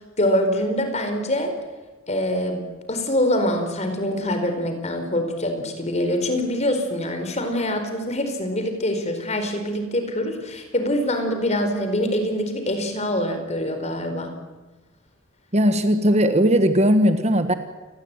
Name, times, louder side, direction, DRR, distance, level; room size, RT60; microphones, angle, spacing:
voice 1, 0.0-1.6 2.1-14.4, left 1 dB, 35° left, 7 dB, 4.6 m, -24 dB
voice 2, 15.5-17.5, equal, 30° right, 9 dB, 1.6 m, -18 dB
29.5 x 20.0 x 9.1 m, 1.2 s
head